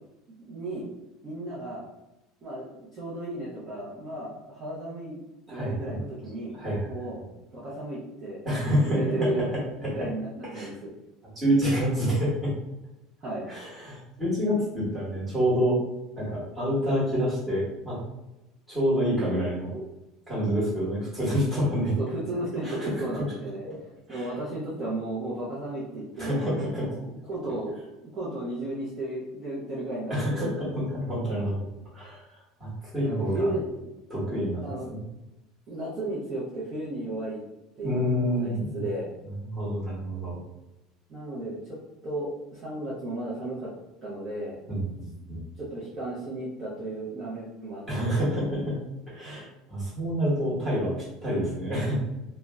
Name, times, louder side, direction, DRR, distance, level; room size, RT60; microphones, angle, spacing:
voice 1, 0.5-0.9 1.2-1.8 2.4-5.2 5.5-6.6 6.8-7.2 7.5-8.4 8.7-9.5 9.9-10.9 13.2-13.4 22.0-23.6 24.1-27.8 28.1-30.5 33.0-33.9 34.6-34.9 35.7-37.4 37.8-39.0 41.1-41.8 42.0-43.7 44.0-44.6 45.6-48.1, right 1 dB, 30° right, -9 dB, 0.7 m, -34 dB
voice 2, 5.5-6.0 6.5-6.9 8.4-9.9 10.5-10.7 11.3-12.5 13.5-15.8 16.2-18.0 18.7-19.8 20.3-21.9 22.6-23.1 23.6-23.8 24.1-24.3 26.2-26.9 30.1-31.7 31.9-33.5 34.1-35.0 37.8-38.8 39.4-40.4 44.7-45.4 47.9-48.8 49.1-50.9 51.2-52.0, equal, 10° right, -8 dB, 1.2 m, -28 dB
2.5 x 2.1 x 3.4 m, 0.95 s
cardioid pair, 160°, 0 cm